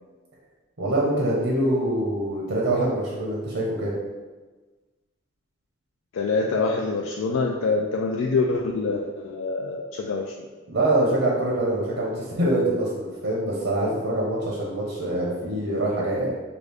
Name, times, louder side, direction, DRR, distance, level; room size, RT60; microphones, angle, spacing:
voice 1, 0.8-3.9 10.7-16.3, right 1 dB, 80° right, -3 dB, 0.8 m, -24 dB
voice 2, 6.1-10.3, left 3 dB, 85° left, 0 dB, 0.3 m, -25 dB
4.9 x 2.4 x 3.4 m, 1.3 s
head